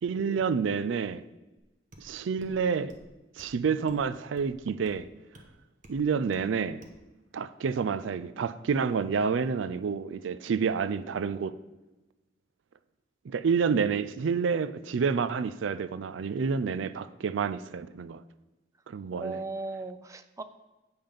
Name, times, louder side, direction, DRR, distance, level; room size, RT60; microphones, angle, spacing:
voice 1, 0.0-1.2 2.0-3.0 3.4-5.1 5.9-6.8 7.3-11.5 13.2-18.2 18.9-19.4, right 6 dB, 90° right, 0.4 m, -29 dB
sound 1, 1.6-1.7 1.9-2.1 2.4-2.6 2.9-3.1 3.4-3.5 3.9-4.0 4.4-4.5 4.9-5.0 5.3-5.5 5.8-6.0 6.3-6.5 6.8-7.0, right 1 dB, 45° right, 1.2 m, -53 dB
voice 2, 19.1-20.4, right 3 dB, 15° right, 0.4 m, -37 dB
8.7 x 5.6 x 5.2 m
head